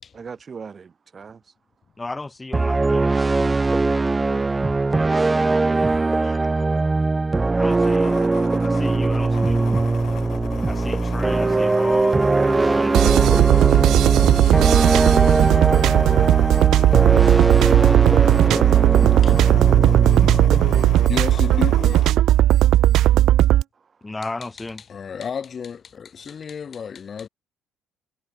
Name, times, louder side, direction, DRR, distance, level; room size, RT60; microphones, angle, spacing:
voice 1, 0.1-1.6 23.7-24.1, right 6 dB, 35° right, 6.6 m, -42 dB
voice 2, 2.0-3.1 7.5-8.2 8.6-9.8 10.6-12.2 12.7-13.9 24.0-24.8, left 2 dB, 15° left, 5.9 m, -34 dB
sound 1, 2.5-21.7, right 3 dB, 20° right, 1.2 m, -21 dB
voice 3, 5.8-6.4 17.8-18.5 18.8-19.5 21.1-22.6 24.9-27.3, left 7 dB, 40° left, 3.7 m, -34 dB
sound 2, 7.7-22.1, left 10 dB, 60° left, 4.3 m, -38 dB
sound 3, 12.9-23.6, right 13 dB, 70° right, 0.4 m, -16 dB
cardioid pair, 95°, 0 cm